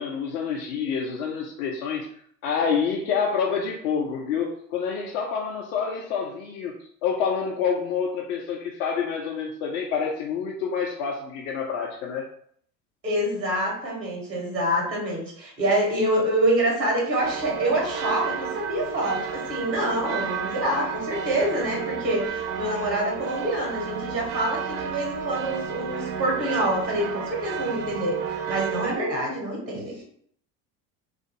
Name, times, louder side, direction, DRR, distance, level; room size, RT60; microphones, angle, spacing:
voice 1, 0.0-2.1 2.4-6.8 7.0-12.3, left 6 dB, 55° left, 0 dB, 0.5 m, -27 dB
voice 2, 13.0-30.0, right 1 dB, 90° right, -1 dB, 0.9 m, -26 dB
sound 1, 17.2-29.0, right 7 dB, 50° right, 0.5 m, -32 dB
2.4 x 2.3 x 2.7 m, 0.62 s
figure-of-eight pair, 70°, 50 cm